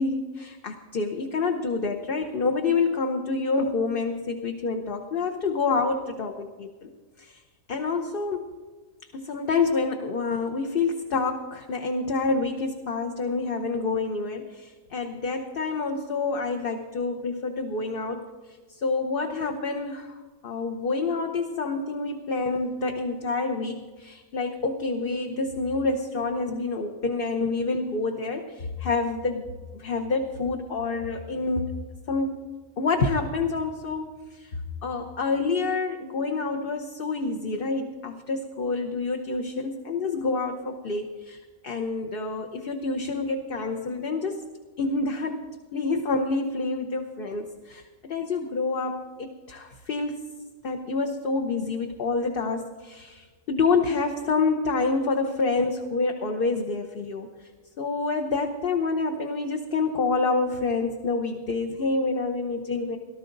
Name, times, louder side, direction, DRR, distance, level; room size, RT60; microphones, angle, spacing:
voice 1, 0.0-6.9 7.2-7.4 7.7-8.5 9.1-29.5 29.7-31.7 32.1-32.4 32.8-44.4 44.8-50.2 50.6-57.5 57.8-63.0, left 3 dB, 45° left, 4 dB, 0.9 m, -28 dB
18.0 x 12.5 x 3.9 m, 1.4 s
omnidirectional pair, 1.4 m